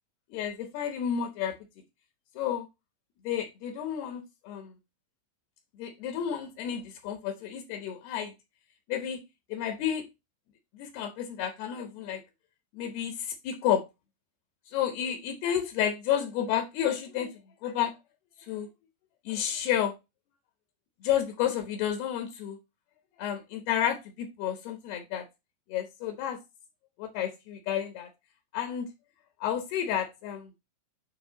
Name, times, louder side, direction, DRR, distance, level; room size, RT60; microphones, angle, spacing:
voice 1, 0.3-1.6 2.4-2.7 3.2-4.7 5.8-8.3 8.9-9.2 9.5-10.1 10.7-12.2 12.7-13.8 14.7-17.9 18.5-18.7 19.3-19.9 21.0-22.6 23.2-25.3 25.7-26.4 27.0-28.1 28.5-28.9 29.4-30.5, left 9 dB, 75° left, 5 dB, 2.4 m, -31 dB
9.3 x 3.5 x 4.0 m, 0.22 s
omnidirectional pair, 5.8 m